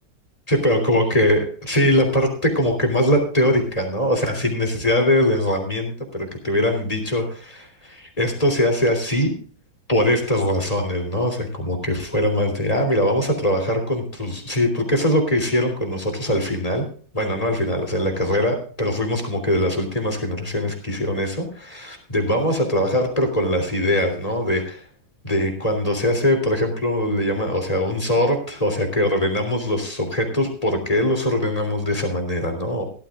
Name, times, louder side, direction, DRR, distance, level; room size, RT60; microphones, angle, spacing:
voice 1, 0.5-9.3 9.9-16.8 17.1-24.8 25.2-32.9, left 1 dB, 15° left, 4 dB, 3.1 m, -22 dB
16.5 x 13.0 x 2.4 m, 0.43 s
omnidirectional pair, 2.2 m